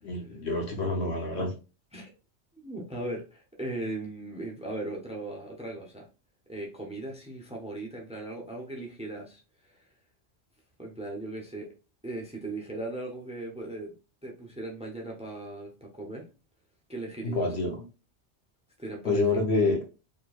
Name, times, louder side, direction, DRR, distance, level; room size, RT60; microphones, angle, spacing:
voice 1, 0.0-1.5 17.2-17.8 19.0-19.8, left 3 dB, 65° left, 1.3 m, -27 dB
voice 2, 2.6-6.1 6.5-9.8 10.8-11.7 12.0-13.9 14.2-16.3 16.9-17.5 18.8-19.4, right 2 dB, 5° right, 0.8 m, -38 dB
4.4 x 3.3 x 2.4 m
omnidirectional pair, 1.2 m